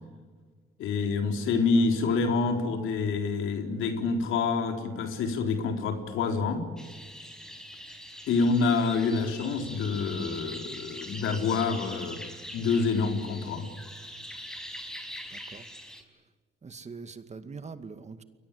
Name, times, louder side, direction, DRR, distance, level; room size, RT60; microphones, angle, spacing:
voice 1, 0.8-6.6 8.3-12.2 12.5-13.7, left 4 dB, 85° left, 5 dB, 4.1 m, -27 dB
sound 1, 6.8-16.0, equal, 5° left, 5.0 m, -43 dB
voice 2, 15.3-15.6 16.6-18.2, right 4 dB, 35° right, 10 dB, 2.2 m, -43 dB
30.0 x 22.5 x 8.5 m, 1.5 s
cardioid pair, 90°, 20 cm